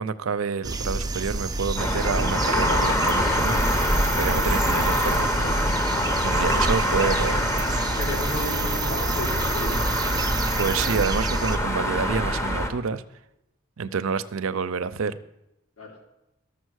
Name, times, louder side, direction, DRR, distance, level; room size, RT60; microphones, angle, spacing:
voice 1, 0.0-5.6 6.2-7.9 10.6-13.0 13.8-15.2, right 5 dB, 85° right, 13 dB, 0.6 m, -28 dB
sound 1, 0.6-11.6, right 3 dB, 20° right, 0.5 m, -29 dB
sound 2, 1.8-12.7, equal, 15° left, 0.8 m, -25 dB
voice 2, 7.9-9.8 15.8-15.9, left 2 dB, 80° left, -1 dB, 3.1 m, -33 dB
13.0 x 6.9 x 6.4 m, 0.91 s
head